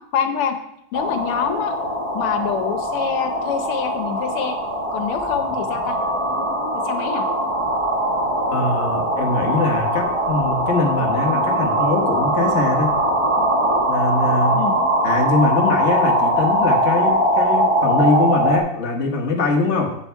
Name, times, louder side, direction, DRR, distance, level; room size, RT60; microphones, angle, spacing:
voice 1, 0.1-0.6 0.9-1.7 2.1-4.6 4.9-6.0 6.7-7.3 14.5-14.8, left 8 dB, 80° left, 7 dB, 1.8 m, -25 dB
sound 1, 0.9-18.6, right 1 dB, 15° right, 1.3 m, -21 dB
voice 2, 8.5-12.9 13.9-14.6 15.0-20.0, left 3 dB, 35° left, 1 dB, 1.5 m, -22 dB
8.1 x 8.1 x 4.6 m, 0.76 s
omnidirectional pair, 2.4 m